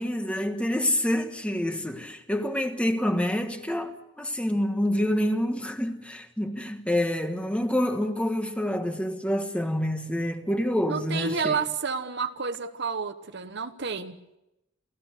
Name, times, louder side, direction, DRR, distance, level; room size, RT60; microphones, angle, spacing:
voice 1, 0.0-11.6, left 1 dB, 5° left, 1.3 m, -27 dB
voice 2, 10.9-14.2, right 5 dB, 60° right, 1.2 m, -30 dB
29.0 x 15.5 x 6.6 m
head